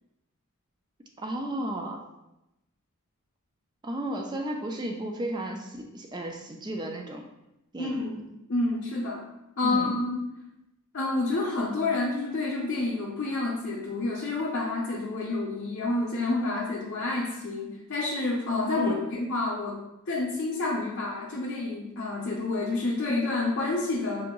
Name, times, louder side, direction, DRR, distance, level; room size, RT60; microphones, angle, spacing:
voice 1, 1.2-2.0 3.8-7.3 7.7-8.0 9.6-10.0 18.8-19.0, right 1 dB, 20° right, 2 dB, 0.4 m, -33 dB
voice 2, 7.8-8.2 8.5-9.2 9.6-10.2 10.9-19.8 20.1-24.3, left 2 dB, 55° left, -4 dB, 0.6 m, -29 dB
4.7 x 2.5 x 3.0 m, 0.90 s
head